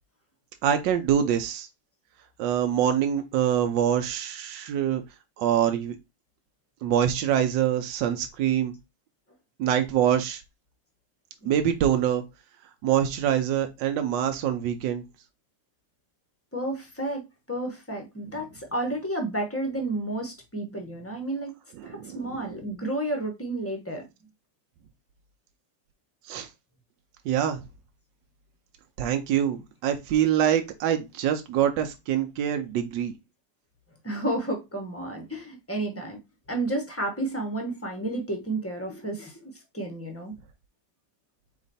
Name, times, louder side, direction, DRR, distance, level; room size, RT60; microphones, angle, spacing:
voice 1, 0.6-1.7 2.4-5.0 5.4-6.0 6.8-8.7 9.6-10.4 11.4-12.2 12.8-15.0 21.8-22.6 26.3-26.5 27.2-27.6 29.0-33.1, right 10 dB, 80° right, 6 dB, 1.3 m, -25 dB
voice 2, 16.5-17.2 17.5-21.5 21.8-24.1 34.0-36.2 36.5-40.3, right 1 dB, 10° left, 2 dB, 0.6 m, -31 dB
4.2 x 3.0 x 4.0 m, 0.23 s
omnidirectional pair, 1.9 m